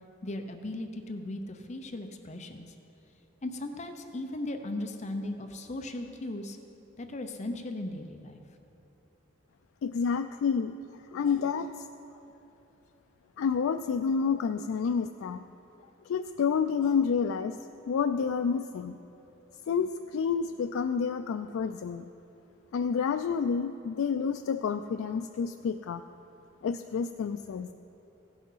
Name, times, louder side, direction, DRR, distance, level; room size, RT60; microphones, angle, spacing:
voice 1, 0.2-2.7 3.4-6.6 7.0-8.4, left 1 dB, 35° left, 6 dB, 0.6 m, -37 dB
voice 2, 9.8-10.7 11.1-11.8 13.4-15.4 16.1-17.6 17.9-19.0 19.7-22.1 22.7-26.0 26.6-27.7, left 6 dB, 85° left, 7 dB, 0.3 m, -29 dB
16.0 x 6.1 x 5.6 m, 3.0 s
head